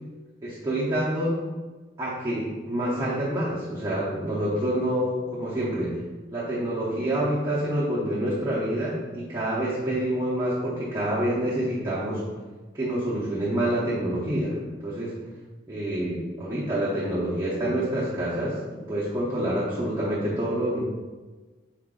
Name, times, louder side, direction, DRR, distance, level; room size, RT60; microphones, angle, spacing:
voice 1, 0.4-1.4 2.0-6.0 6.3-12.2 12.7-15.2 15.7-20.8, right 1 dB, 20° right, -9 dB, 0.7 m, -27 dB
4.8 x 2.5 x 3.7 m, 1.3 s
head